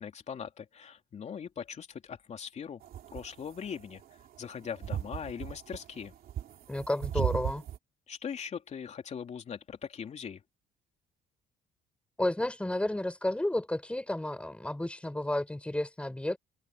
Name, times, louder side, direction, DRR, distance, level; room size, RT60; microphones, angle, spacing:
voice 1, 0.0-2.8 3.1-4.0 4.4-6.1 8.1-10.4, left 7 dB, 40° left, 3.0 m, -40 dB
sound 1, 2.8-7.8, right 10 dB, 60° right, 3.0 m, -35 dB
voice 2, 6.7-7.6 12.2-16.4, left 1 dB, 5° left, 5.1 m, -31 dB
cardioid pair, 110°, 17 cm